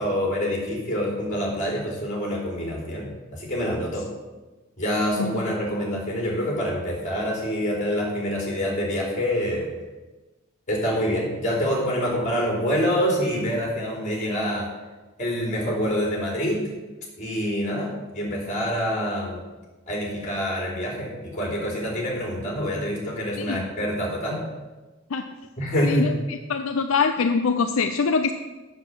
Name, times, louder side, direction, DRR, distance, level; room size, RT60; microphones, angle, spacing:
voice 1, 0.0-4.1 4.8-9.7 10.7-14.7 15.2-16.6 17.2-19.4 19.9-24.4 25.6-26.1, equal, 35° left, -2 dB, 3.4 m, -26 dB
voice 2, 5.2-5.5 23.4-23.7 25.1-25.3 25.8-26.1 26.5-28.3, left 5 dB, 80° left, 6 dB, 0.5 m, -24 dB
7.5 x 6.9 x 7.4 m, 1.2 s
head